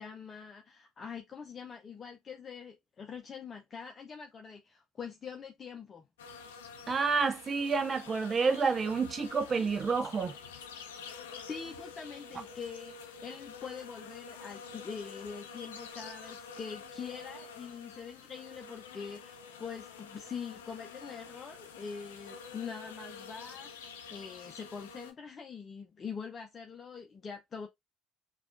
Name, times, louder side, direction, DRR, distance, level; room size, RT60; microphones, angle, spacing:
voice 1, 0.0-6.1 11.4-27.7, left 6 dB, 35° left, 0.7 m, -44 dB
sound 1, 6.2-25.1, left 5 dB, 75° left, 0.7 m, -48 dB
voice 2, 6.9-10.3, right 5 dB, 30° right, 0.5 m, -29 dB
6.1 x 2.4 x 2.5 m
hypercardioid pair, 65°, 0 cm